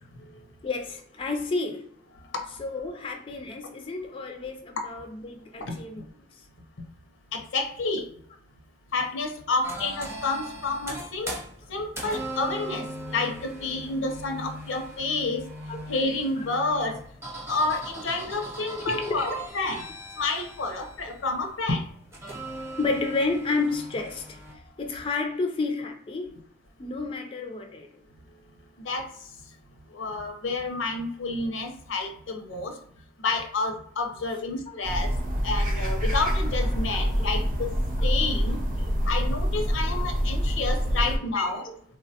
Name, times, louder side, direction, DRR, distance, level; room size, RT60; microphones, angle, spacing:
voice 1, 0.6-1.9 2.6-6.1 15.7-15.8 18.7-19.4 22.8-24.4 24.8-26.3 26.8-28.0 34.7-34.8 37.2-37.3 38.0-38.1 41.3-41.7, left 3 dB, 30° left, 3 dB, 0.3 m, -31 dB
voice 2, 7.3-8.0 8.9-11.3 11.7-12.9 13.1-15.4 15.9-17.0 17.5-19.8 20.2-21.8 28.8-29.0 29.9-32.7 33.2-35.1 35.4-37.7 38.0-38.6 39.1-41.6, left 3 dB, 80° left, 4 dB, 0.6 m, -29 dB
sound 1, 9.6-24.5, right 1 dB, 15° right, 0.7 m, -40 dB
sound 2, 34.8-41.2, equal, 50° right, 0.6 m, -26 dB
3.3 x 2.1 x 2.7 m, 0.64 s
head